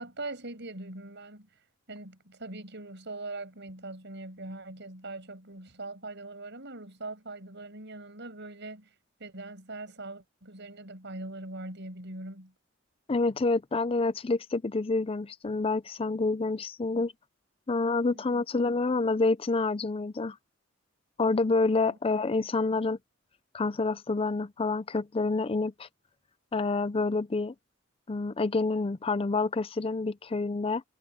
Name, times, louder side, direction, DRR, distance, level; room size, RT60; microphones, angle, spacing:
voice 1, 0.0-1.5 1.9-8.9 9.2-12.5 18.1-18.4 21.8-22.0, right 2 dB, 60° right, 7.9 m, -41 dB
voice 2, 13.1-17.1 17.7-20.4 21.2-23.0 23.5-25.9 26.5-27.5 28.1-30.8, left 3 dB, 30° left, 0.5 m, -28 dB
head